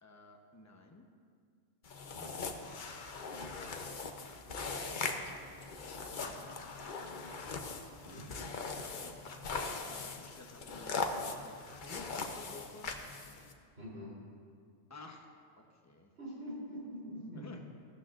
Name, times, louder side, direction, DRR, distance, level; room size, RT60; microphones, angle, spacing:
voice 1, 0.0-1.0 5.0-5.5 5.8-6.4 8.1-9.2 9.8-12.9 14.9-15.3 15.6-16.1 17.3-17.6, left 3 dB, 15° left, 2 dB, 0.8 m, -54 dB
sound 1, 1.8-13.5, left 4 dB, 45° left, 0.8 m, -40 dB
voice 2, 13.8-14.2 16.2-17.4, equal, 65° right, -6 dB, 3.8 m, -45 dB
15.5 x 12.5 x 2.5 m, 2.1 s
omnidirectional pair, 1.3 m